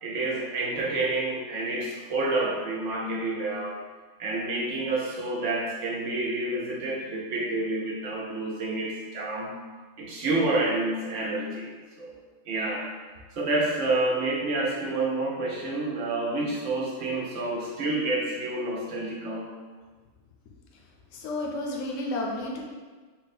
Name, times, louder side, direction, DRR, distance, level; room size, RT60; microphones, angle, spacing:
voice 1, 0.0-3.8 4.2-9.5 10.0-12.1 12.5-12.9 13.3-19.5, right 2 dB, 70° right, -3 dB, 1.0 m, -29 dB
voice 2, 21.1-22.6, left 1 dB, 75° left, -1 dB, 1.0 m, -31 dB
3.9 x 2.2 x 4.1 m, 1.4 s
omnidirectional pair, 1.3 m